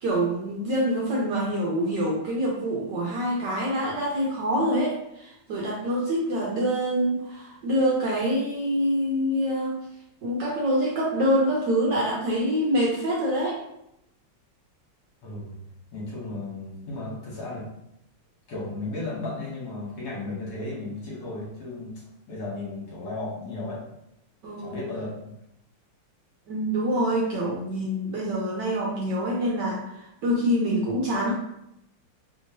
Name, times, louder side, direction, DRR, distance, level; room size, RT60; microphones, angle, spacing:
voice 1, 0.0-9.8 10.2-13.6 24.4-24.8 26.5-31.3, equal, 70° right, -3 dB, 1.1 m, -25 dB
voice 2, 15.2-15.6 15.9-17.8 18.5-21.9 22.3-23.8 24.6-25.1, left 2 dB, 60° left, -6 dB, 1.7 m, -34 dB
3.5 x 2.9 x 2.8 m, 0.81 s
omnidirectional pair, 2.3 m